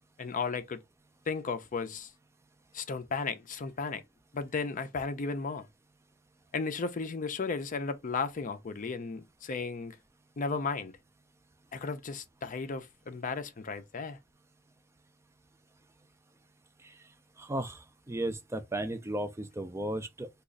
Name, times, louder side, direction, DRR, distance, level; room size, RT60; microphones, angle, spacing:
voice 1, 0.2-0.8 1.3-2.1 2.7-4.0 4.3-5.7 6.5-10.0 10.4-10.9 11.7-14.2, left 4 dB, 40° left, 0.5 m, -34 dB
voice 2, 17.4-20.3, right 1 dB, 15° right, 0.4 m, -35 dB
3.0 x 2.3 x 3.7 m
head